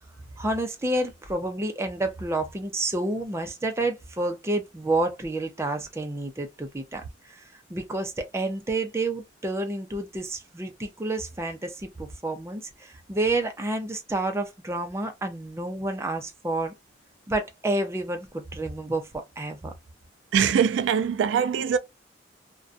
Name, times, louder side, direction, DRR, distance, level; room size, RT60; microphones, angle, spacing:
voice 1, 0.4-7.0 7.3-7.4 7.7-16.7 17.3-19.7, right 2 dB, 15° right, 0.5 m, -29 dB
voice 2, 20.3-21.8, right 7 dB, 85° right, 0.3 m, -22 dB
2.4 x 2.2 x 2.4 m
head